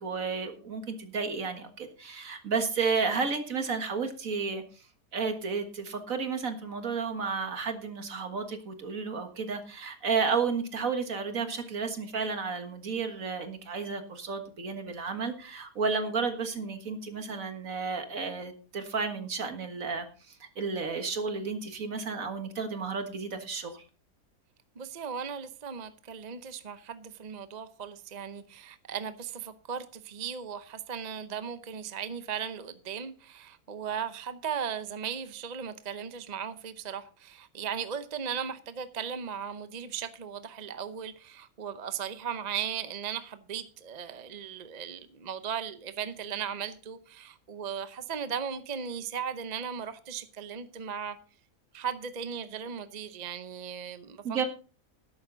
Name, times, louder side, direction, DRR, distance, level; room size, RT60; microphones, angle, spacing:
voice 1, 0.0-4.8 5.1-23.8 54.2-54.5, right 5 dB, 65° right, 7 dB, 2.0 m, -32 dB
voice 2, 24.8-51.2 51.7-54.4, right 7 dB, 35° right, 11 dB, 0.8 m, -37 dB
13.0 x 11.0 x 3.9 m, 0.37 s
omnidirectional pair, 1.6 m